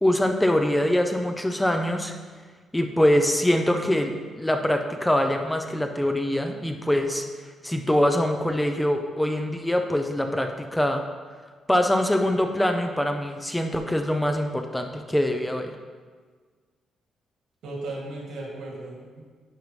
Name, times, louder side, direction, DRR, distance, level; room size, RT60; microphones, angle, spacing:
voice 1, 0.0-2.1 2.7-7.2 7.6-11.0 11.7-15.7, left 1 dB, 5° left, 5 dB, 0.4 m, -24 dB
voice 2, 17.6-19.2, right 2 dB, 80° right, -2 dB, 2.1 m, -36 dB
9.8 x 5.3 x 3.2 m, 1.5 s
cardioid pair, 150°, 0 cm